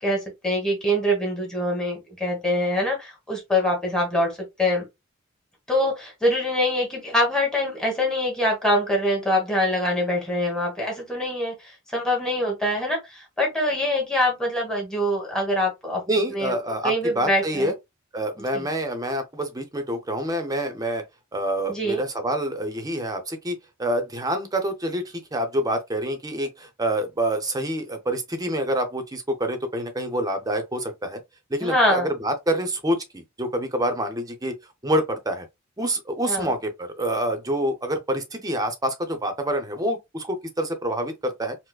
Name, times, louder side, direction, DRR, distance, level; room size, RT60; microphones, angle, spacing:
voice 1, 0.0-4.9 5.7-16.0 16.3-16.5 16.8-17.7 18.5-18.7 21.7-22.0 31.6-32.1 36.3-36.5, left 1 dB, 5° left, 1.1 m, -24 dB
voice 2, 16.1-17.7 18.1-21.0 21.3-31.2 31.5-34.5 34.8-35.5 35.8-41.6, right 1 dB, 15° right, 0.6 m, -27 dB
4.7 x 2.0 x 2.3 m
head